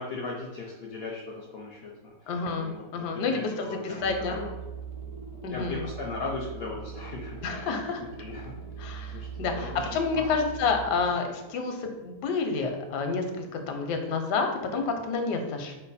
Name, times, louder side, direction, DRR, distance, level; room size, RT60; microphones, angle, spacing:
voice 1, 0.0-4.5 5.5-7.7 8.0-8.5 9.1-10.4, left 3 dB, 70° left, -1 dB, 0.5 m, -38 dB
voice 2, 2.3-4.4 5.4-5.8 7.4-8.0 8.8-15.8, left 4 dB, 85° left, 4 dB, 1.3 m, -29 dB
sound 1, 4.0-11.2, right 6 dB, 65° right, 0.9 m, -41 dB
5.0 x 2.2 x 4.0 m, 1.1 s
omnidirectional pair, 1.7 m